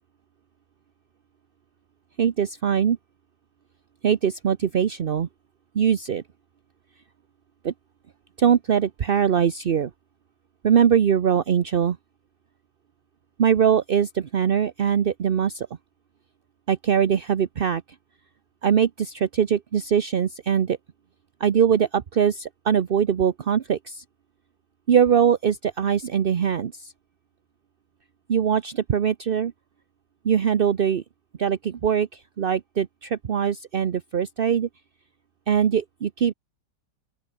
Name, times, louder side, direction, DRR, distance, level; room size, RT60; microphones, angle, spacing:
voice 1, 2.2-3.0 4.0-5.3 5.7-6.2 7.6-7.7 8.4-9.9 10.6-12.0 13.4-15.7 16.7-17.8 18.6-20.8 21.4-24.0 24.9-26.9 28.3-29.5 30.2-31.0 31.4-34.7 35.5-36.3, right 8 dB, 50° right, 0.7 m, -22 dB
open air
omnidirectional pair, 1.9 m